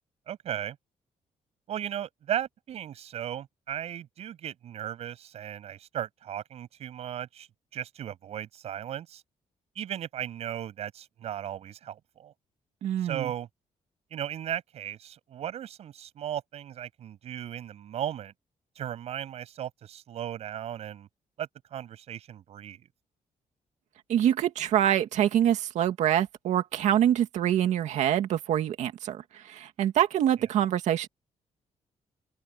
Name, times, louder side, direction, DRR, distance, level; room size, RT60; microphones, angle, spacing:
voice 1, 0.3-0.8 1.7-7.5 7.7-9.2 9.7-12.3 13.0-13.5 14.1-18.3 18.8-21.1 21.4-22.9 30.4-30.5, right 10 dB, 65° right, 8.0 m, -36 dB
voice 2, 12.8-13.3 24.1-31.1, right 11 dB, 80° right, 2.3 m, -25 dB
open air
cardioid pair, 170°, 12 cm